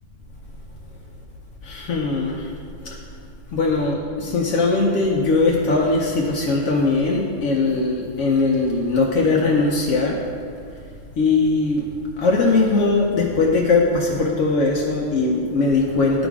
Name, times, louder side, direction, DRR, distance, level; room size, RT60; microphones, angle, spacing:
voice 1, 1.6-2.5 2.8-3.0 3.5-10.2 11.2-11.9 12.2-16.3, left 3 dB, 80° left, -1 dB, 1.0 m, -20 dB
11.5 x 3.9 x 4.7 m, 2.2 s
omnidirectional pair, 1.3 m